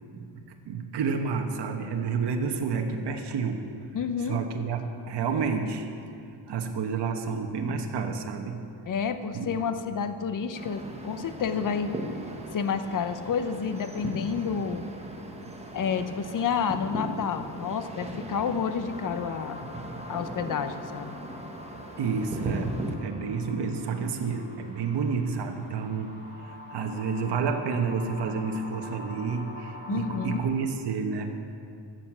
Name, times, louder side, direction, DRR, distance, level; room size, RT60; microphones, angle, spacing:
voice 1, 0.1-3.7 4.2-5.9 6.5-8.6 9.3-9.7 22.0-31.3, right 5 dB, 60° right, 4 dB, 1.1 m, -30 dB
voice 2, 3.9-4.4 8.9-11.9 12.5-14.8 15.7-19.6 20.1-21.2 29.9-30.4, left 6 dB, 40° left, 10 dB, 0.8 m, -30 dB
sound 1, 10.5-23.0, right 1 dB, 15° right, 1.1 m, -38 dB
sound 2, 18.9-30.4, left 2 dB, 20° left, 2.1 m, -45 dB
12.5 x 7.8 x 7.3 m, 2.5 s
cardioid pair, 135°, 47 cm